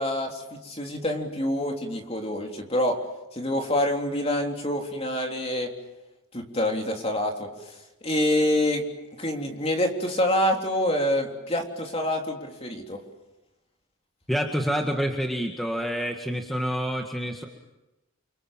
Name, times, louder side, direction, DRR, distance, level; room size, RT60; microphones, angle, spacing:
voice 1, 0.0-3.0 3.3-5.7 6.3-13.0, left 1 dB, 25° left, 2 dB, 3.5 m, -27 dB
voice 2, 14.3-17.4, equal, ahead, 2 dB, 1.8 m, -27 dB
30.0 x 25.0 x 7.5 m, 1.0 s
head